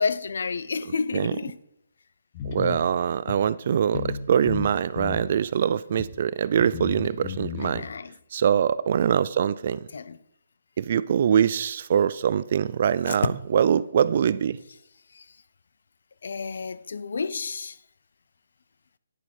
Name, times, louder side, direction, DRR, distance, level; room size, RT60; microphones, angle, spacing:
voice 1, 0.0-1.6 7.6-8.1 9.9-10.2 13.1-13.2 15.2-15.3 16.2-17.8, left 5 dB, 70° left, 0.5 m, -30 dB
sound 1, 2.3-2.8 3.3-3.4 3.9-4.2 4.5-5.3 6.0-6.1 6.6-7.8, left 8 dB, 35° left, 1.1 m, -33 dB
voice 2, 2.5-7.8 8.3-9.8 10.8-14.6, right 8 dB, 50° right, 0.4 m, -23 dB
9.9 x 6.8 x 4.4 m
hypercardioid pair, 155°, 0 cm